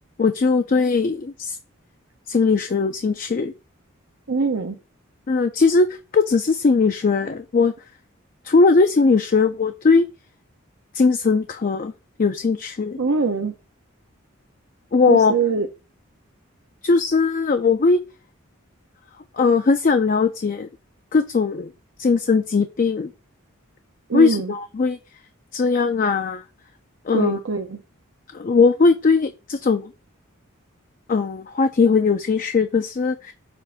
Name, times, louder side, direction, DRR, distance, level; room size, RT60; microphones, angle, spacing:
voice 1, 0.2-1.6 2.3-3.5 5.3-5.9 6.1-7.7 8.4-10.1 10.9-11.9 12.2-13.0 14.9-15.3 16.8-18.0 19.3-20.7 21.1-21.7 22.0-23.1 24.1-25.0 25.5-26.4 27.1-27.4 28.3-29.9 31.1-33.3, left 4 dB, 40° left, 7 dB, 0.4 m, -19 dB
voice 2, 4.3-4.8 13.0-13.5 15.1-15.7 24.1-24.5 27.1-27.8, right 4 dB, 75° right, 3 dB, 0.7 m, -23 dB
6.7 x 2.6 x 5.6 m, 0.31 s
head